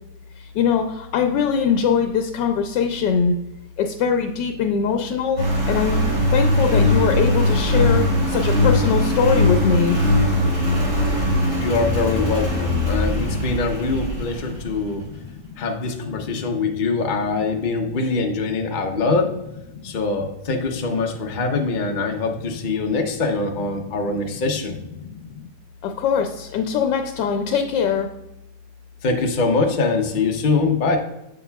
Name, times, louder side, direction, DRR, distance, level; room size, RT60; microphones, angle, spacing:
voice 1, 0.4-3.3 3.8-6.0 6.3-10.0 13.0-13.4 14.6-15.6 16.3-16.7 19.8-20.0 24.1-24.3 25.0-25.4 25.8-28.1, left 7 dB, 85° left, 5 dB, 1.2 m, -23 dB
Engine, 5.4-14.8, left 1 dB, 45° right, 2.8 m, -20 dB
voice 2, 11.6-15.1 15.6-19.4 19.8-24.8 29.0-31.0, left 3 dB, 55° left, 3 dB, 0.5 m, -23 dB
7.4 x 6.9 x 2.3 m, 0.90 s
omnidirectional pair, 1.9 m